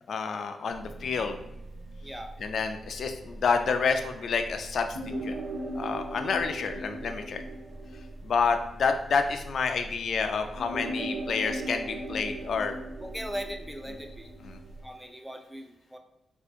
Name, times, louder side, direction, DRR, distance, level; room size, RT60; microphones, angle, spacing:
voice 1, 0.1-1.4 2.4-4.9 5.2-5.4 5.8-7.4 8.2-12.8 14.4-14.6, left 5 dB, 70° left, 7 dB, 0.4 m, -29 dB
sound 1, 0.7-14.8, right 1 dB, 75° right, 0.7 m, -39 dB
voice 2, 2.0-2.3 6.2-6.5 13.0-14.3 14.8-16.0, equal, ahead, 4 dB, 0.5 m, -39 dB
4.1 x 2.7 x 2.4 m, 0.89 s
cardioid pair, 60°, 0 cm